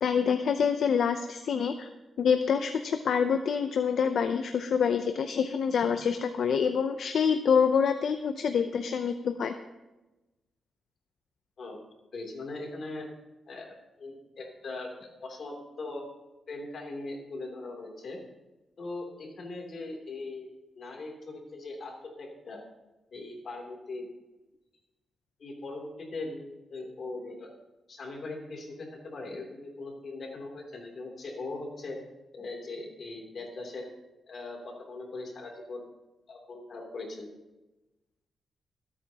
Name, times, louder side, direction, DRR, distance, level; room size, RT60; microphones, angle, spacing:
voice 1, 0.0-1.9 2.2-9.5, left 6 dB, 65° left, 7 dB, 0.6 m, -26 dB
voice 2, 12.1-13.1 13.5-16.1 16.5-18.2 18.8-20.5 20.7-22.6 23.1-24.1 25.4-27.5 27.9-32.0 32.3-33.9 34.3-35.9 36.3-37.3, left 2 dB, 50° left, 0 dB, 3.1 m, -40 dB
25.0 x 8.5 x 2.9 m, 1.0 s
wide cardioid pair, 135°, 0 cm